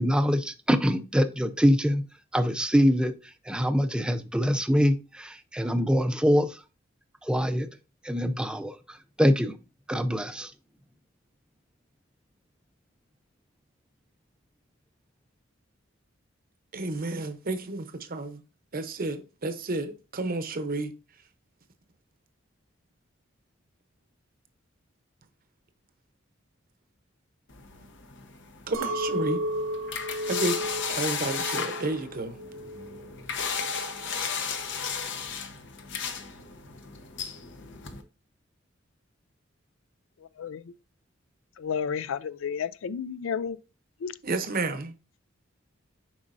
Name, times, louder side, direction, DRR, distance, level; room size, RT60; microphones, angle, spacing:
voice 1, 0.0-2.0 2.3-6.6 7.2-7.7 8.0-9.5 9.9-10.5, equal, 5° right, 0.4 m, -24 dB
voice 2, 16.7-18.4 18.7-20.9 28.7-29.4 30.3-32.4 44.2-44.9, right 2 dB, 50° right, 0.8 m, -31 dB
sound 1, 27.5-38.0, left 6 dB, 65° left, 0.8 m, -35 dB
Chink clink, 28.7-33.1 33.5-34.1, equal, 85° right, 0.8 m, -34 dB
voice 3, 40.2-40.7 41.6-43.6 44.0-44.1, left 7 dB, 80° left, 0.4 m, -32 dB
7.3 x 5.0 x 2.6 m
head